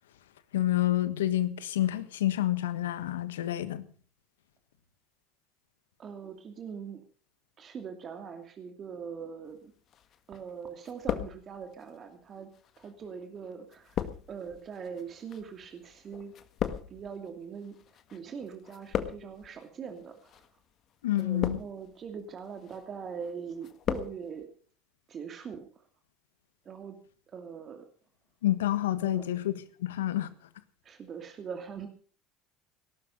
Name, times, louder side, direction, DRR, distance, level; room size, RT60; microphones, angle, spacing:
voice 1, 0.5-3.9 21.0-21.6 28.4-30.3, left 13 dB, 85° left, 1.4 m, -28 dB
voice 2, 6.0-7.0 7.6-9.6 10.3-12.5 12.8-13.8 14.3-16.3 16.9-17.8 18.1-20.1 21.2-24.5 25.1-25.6 26.7-27.0 27.3-27.8 29.0-29.2 30.9-31.9, right 6 dB, 40° right, 2.6 m, -41 dB
sound 1, 9.9-10.5 10.8-11.8 12.5-18.2 18.5-19.5 20.2-20.5 21.1-21.9 22.4-22.8 23.2-24.2 24.4-24.5, left 10 dB, 50° left, 1.7 m, -36 dB
18.5 x 12.5 x 5.4 m
hypercardioid pair, 75°, 0 cm